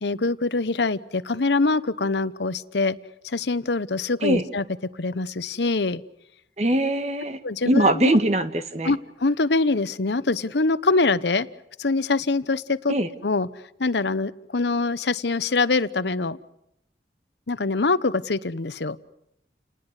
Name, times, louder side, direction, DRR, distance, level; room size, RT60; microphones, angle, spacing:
voice 1, 0.0-3.0 3.2-4.6 5.0-6.0 7.4-8.2 8.8-11.5 11.8-12.9 13.2-13.5 13.8-16.4 17.5-19.0, left 3 dB, 75° left, 15 dB, 0.9 m, -24 dB
voice 2, 6.6-7.4 7.6-8.9 12.9-13.1, right 1 dB, 40° right, 10 dB, 1.6 m, -21 dB
29.5 x 19.5 x 8.2 m, 0.79 s
head